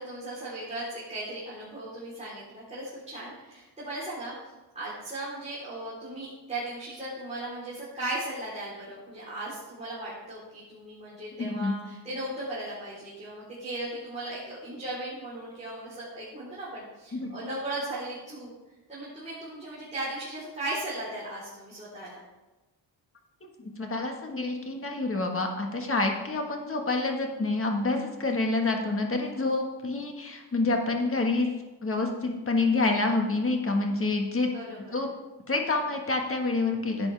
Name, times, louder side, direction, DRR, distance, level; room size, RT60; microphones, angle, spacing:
voice 1, 0.0-4.3 4.7-18.5 18.9-22.2 34.4-35.0, right 1 dB, 15° right, -10 dB, 3.6 m, -37 dB
voice 2, 11.4-11.7 17.1-17.3 23.6-31.5 31.8-34.5 34.9-35.1 35.5-37.1, left 3 dB, 30° left, 3 dB, 1.5 m, -27 dB
11.5 x 8.3 x 3.4 m, 1.1 s
cardioid pair, 110°, 43 cm